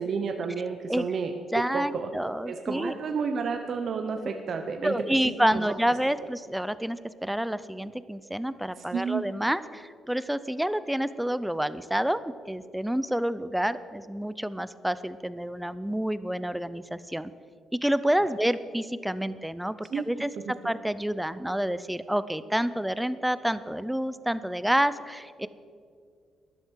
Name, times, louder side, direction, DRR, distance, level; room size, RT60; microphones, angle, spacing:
voice 1, 0.0-1.3 1.7-2.1 2.5-4.9 5.2-5.6 8.7-9.2 19.9-20.1 20.5-20.6, right 5 dB, 55° right, 5 dB, 0.8 m, -31 dB
voice 2, 1.5-2.9 4.8-12.2 12.5-17.3 17.8-25.5, equal, 5° right, 15 dB, 0.5 m, -28 dB
13.0 x 11.0 x 4.7 m, 2.2 s
cardioid pair, 90°, 0 cm